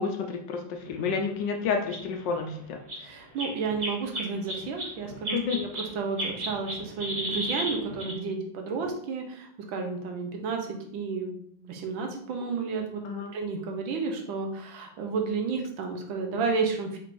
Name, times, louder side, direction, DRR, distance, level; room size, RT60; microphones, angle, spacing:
voice 1, 0.0-2.8 5.3-5.6 13.0-13.3, left 5 dB, 75° left, 3 dB, 1.2 m, -30 dB
sound 1, 0.9-1.0 1.6-1.7 1.9-2.0 2.3-2.4 2.9-3.1 3.4-5.9 6.2-8.1, right 1 dB, 35° right, 0.7 m, -33 dB
voice 2, 3.0-11.3 11.6-17.0, right 4 dB, 80° right, 3 dB, 1.5 m, -32 dB
4.5 x 4.5 x 2.6 m, 0.66 s
omnidirectional pair, 2.2 m